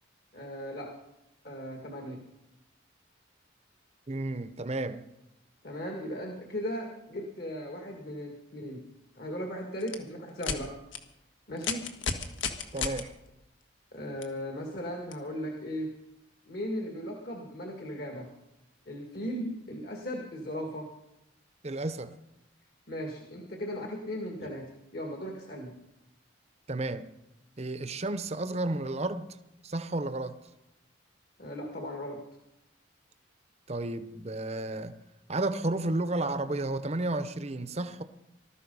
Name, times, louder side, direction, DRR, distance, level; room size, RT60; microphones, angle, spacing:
voice 1, 0.3-0.9 1.4-2.2 5.6-8.8 9.1-10.8 11.5-11.9 13.9-15.9 16.5-18.3 18.9-20.9 22.9-25.7 31.4-32.2, equal, 50° left, 1.9 m, -37 dB
voice 2, 4.1-5.0 12.7-13.1 21.6-22.1 24.4-24.5 26.7-27.1 27.6-29.3 29.6-30.4 33.7-35.0 35.3-38.0, right 2 dB, 30° right, 0.8 m, -32 dB
sound 1, 9.8-10.0 10.4-10.6 10.9-11.0 11.6-13.0 14.2-14.3 15.1-15.2, left 5 dB, 80° left, 1.6 m, -32 dB
19.5 x 13.0 x 5.4 m
head